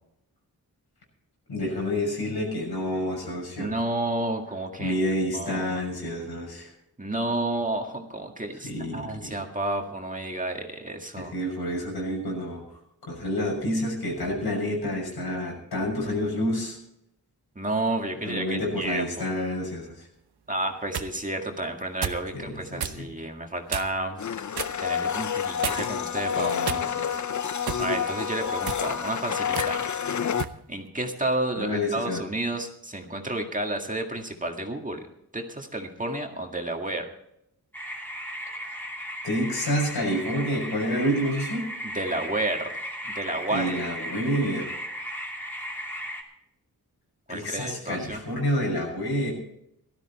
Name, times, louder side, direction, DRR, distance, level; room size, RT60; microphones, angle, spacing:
voice 1, 1.5-3.7 4.8-6.7 8.6-9.3 11.2-12.6 13.1-16.8 18.2-20.1 22.3-23.1 26.3-27.2 31.6-32.2 38.6-38.7 39.2-41.7 43.5-44.7 47.3-49.3, equal, 85° left, -1 dB, 6.5 m, -29 dB
voice 2, 3.6-4.9 5.3-5.9 7.0-11.3 17.6-19.3 20.5-24.2 24.8-26.5 27.8-29.9 30.7-35.0 35.3-37.1 41.8-42.7 43.2-43.8 47.3-48.2, right 2 dB, 20° right, 2 dB, 1.9 m, -31 dB
sound 1, 20.6-21.1 22.0-22.3 22.8-23.0 23.7-24.0 24.5-24.8 25.6-26.0 26.6-27.2 27.7-27.9 28.5-28.9 29.5-29.7 30.4-30.6, right 7 dB, 85° right, 1.0 m, -32 dB
Domestic sounds home sounds, 24.2-30.4, left 8 dB, 50° left, 0.6 m, -28 dB
sound 2, 37.7-46.2, equal, 5° left, 2.9 m, -36 dB
17.5 x 13.0 x 4.2 m, 0.77 s
wide cardioid pair, 95°, 38 cm